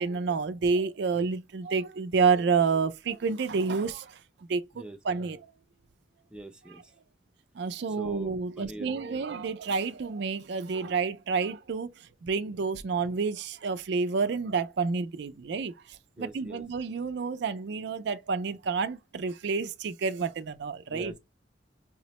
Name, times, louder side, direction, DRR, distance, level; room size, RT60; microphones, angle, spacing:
voice 1, 0.0-4.2 4.5-5.5 7.6-21.1, right 5 dB, 65° right, 0.4 m, -29 dB
voice 2, 6.3-6.9 7.9-9.3 16.2-16.6 20.9-21.2, right 1 dB, 5° right, 0.5 m, -43 dB
4.9 x 2.1 x 2.8 m
head